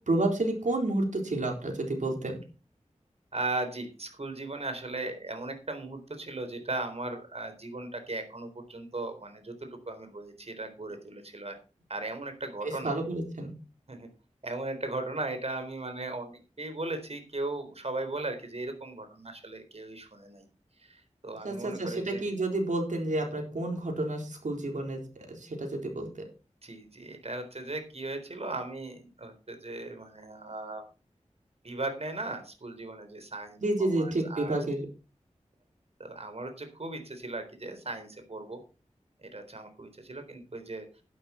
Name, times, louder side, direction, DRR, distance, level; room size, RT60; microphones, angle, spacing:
voice 1, 0.1-2.4 12.6-13.5 21.4-25.0 25.3-26.2 33.6-34.9, right 2 dB, 90° right, 2 dB, 4.0 m, -30 dB
voice 2, 3.3-11.6 11.9-13.0 13.9-14.1 14.4-20.5 20.8-22.3 26.6-30.8 31.6-34.6 36.0-38.6 39.2-40.9, right 2 dB, 55° right, 7 dB, 3.9 m, -37 dB
11.5 x 11.0 x 4.4 m, 0.33 s
wide cardioid pair, 60°, 13 cm